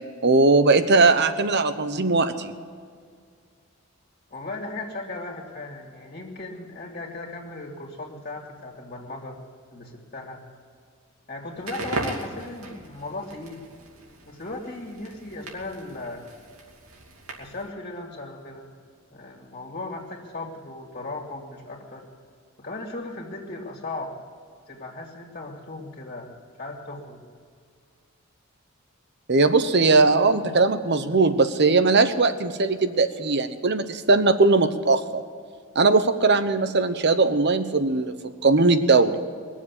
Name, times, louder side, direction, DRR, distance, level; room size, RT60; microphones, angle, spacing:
voice 1, 0.2-2.5 29.3-35.2 35.7-38.2 38.4-39.2, right 3 dB, 55° right, 10 dB, 1.0 m, -19 dB
voice 2, 4.3-9.4 9.7-10.4 11.3-13.7 14.2-16.2 17.4-18.7 19.1-22.1 22.6-24.2 24.7-26.3 26.6-27.2 29.6-30.8, left 2 dB, 40° left, -2 dB, 2.5 m, -37 dB
Crackle, 11.5-17.7, right 2 dB, 85° right, 2.7 m, -37 dB
21.5 x 7.4 x 8.4 m, 2.1 s
head